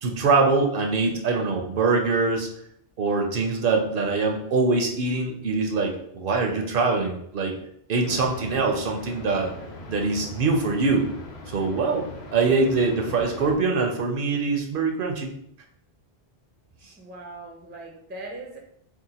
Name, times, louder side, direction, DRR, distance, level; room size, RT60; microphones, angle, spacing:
voice 1, 0.0-2.5 3.0-7.6 7.9-9.5 9.9-11.1 11.5-15.3, right 3 dB, 65° right, 2 dB, 0.7 m, -23 dB
sound 1, 8.0-13.6, left 2 dB, 75° left, 0.9 m, -40 dB
voice 2, 17.0-18.6, right 2 dB, 15° right, 0 dB, 0.3 m, -39 dB
2.7 x 2.1 x 4.0 m, 0.71 s
omnidirectional pair, 1.1 m